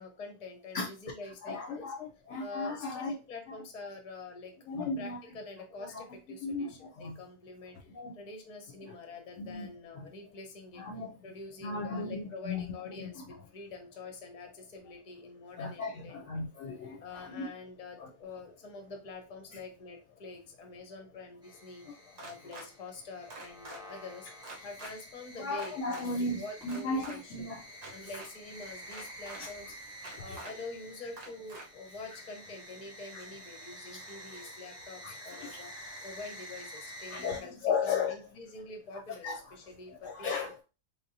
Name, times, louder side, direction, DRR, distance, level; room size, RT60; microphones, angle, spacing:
voice 1, 0.0-1.9 2.4-7.9 8.1-10.8 11.2-16.4 17.0-21.8 22.2-27.5 27.9-29.8 30.2-35.7 36.0-40.5, left 3 dB, 40° left, 4 dB, 0.7 m, -46 dB
voice 2, 1.4-2.0 2.3-3.1 4.7-5.2 6.4-6.7 7.0-7.2 7.9-8.2 9.4-9.7 10.8-11.1 11.6-12.6 15.6-17.0 17.4-17.5 25.4-27.6 30.3-30.4 33.9-34.0 34.3-34.5 35.0-35.1 35.4-35.5 37.1-38.1 39.2-39.4 40.0-40.6, left 4 dB, 65° left, 0 dB, 0.8 m, -35 dB
sound 1, 21.4-37.4, equal, 5° right, 0.4 m, -49 dB
sound 2, 22.2-22.7 23.3-23.8 24.4-24.9 25.6-26.0 26.6-27.2 27.8-28.3 28.9-29.4 30.0-30.5 31.2-31.7, right 2 dB, 85° right, 1.5 m, -45 dB
3.7 x 2.8 x 2.6 m, 0.32 s
omnidirectional pair, 1.4 m